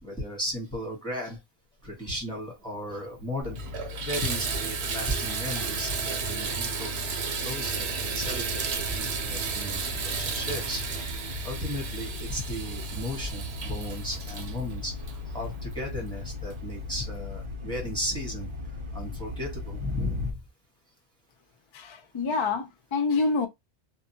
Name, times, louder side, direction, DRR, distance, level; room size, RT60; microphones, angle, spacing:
voice 1, 0.0-1.4 1.8-3.6 4.0-6.9 7.4-10.8 11.4-14.9 15.3-18.5 18.9-20.4, left 1 dB, 5° left, 1.1 m, -35 dB
Water tap faucet / Bathtub (filling or washing), 2.9-3.0 3.4-15.8 16.5-16.6 17.1-17.2, right 6 dB, 75° right, 0.9 m, -33 dB
sound 1, 3.4-20.3, left 4 dB, 35° right, 0.5 m, -38 dB
voice 2, 21.7-23.5, left 4 dB, 40° left, 0.4 m, -27 dB
2.9 x 2.3 x 2.7 m
omnidirectional pair, 1.1 m